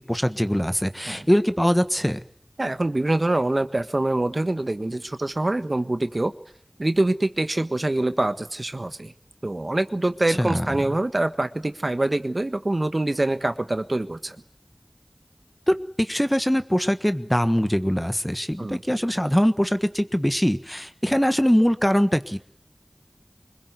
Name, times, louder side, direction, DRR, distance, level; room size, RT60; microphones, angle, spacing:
voice 1, 0.1-2.2 10.3-10.8 15.7-22.4, equal, 10° left, 10 dB, 1.4 m, -22 dB
voice 2, 2.6-6.3 6.8-9.1 9.4-14.4 18.6-18.8, right 2 dB, 60° right, 10 dB, 1.5 m, -25 dB
25.0 x 21.5 x 9.5 m, 0.68 s
wide cardioid pair, 40°, 0 cm